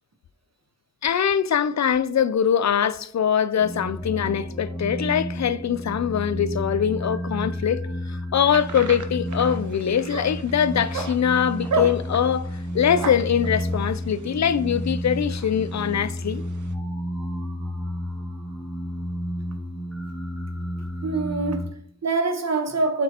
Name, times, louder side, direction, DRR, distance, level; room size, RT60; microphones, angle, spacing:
voice 1, 1.0-7.8 8.1-16.4, left 8 dB, 70° left, 0.5 m, -23 dB
sound 1, 3.6-21.7, equal, ahead, 2.2 m, -31 dB
astro barks, 8.5-16.7, right 3 dB, 85° right, 0.8 m, -35 dB
voice 2, 21.0-23.0, right 3 dB, 65° right, 1.2 m, -25 dB
7.5 x 6.0 x 2.9 m
wide cardioid pair, 80°, 29 cm